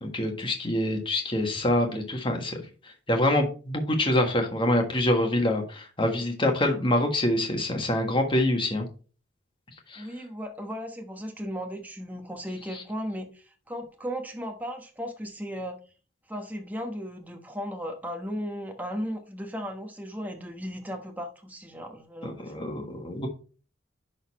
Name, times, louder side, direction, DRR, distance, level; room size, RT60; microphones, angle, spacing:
voice 1, 0.0-2.6 2.8-8.9 9.9-10.1 12.7-12.8 22.2-23.3, left 1 dB, 25° left, 3 dB, 1.5 m, -26 dB
voice 2, 10.0-15.8 16.3-22.6, equal, 10° right, 4 dB, 1.2 m, -36 dB
11.0 x 4.1 x 4.2 m, 0.37 s
head